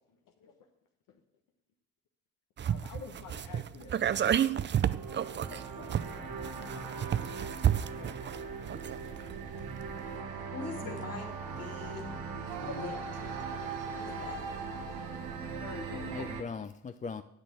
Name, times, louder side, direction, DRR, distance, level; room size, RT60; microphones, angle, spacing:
sound 1, 2.6-9.3 9.6-9.7, right 9 dB, 30° right, 0.5 m, -31 dB
voice 1, 2.7-5.0 5.5-6.0 8.0-8.1 15.5-16.3, left 7 dB, 65° left, 3 dB, 1.1 m, -48 dB
sound 2, 4.5-16.4, right 5 dB, 75° right, 1.4 m, -40 dB
voice 2, 6.7-7.1 9.2-9.7 10.1-10.4 13.7-13.8 15.9-17.2, left 5 dB, 20° left, 10 dB, 0.5 m, -43 dB
voice 3, 10.5-12.2 12.6-13.0 13.8-14.5, left 4 dB, 45° left, 2 dB, 2.5 m, -43 dB
8.2 x 6.5 x 7.5 m, 0.84 s
supercardioid pair, 60°, 35 cm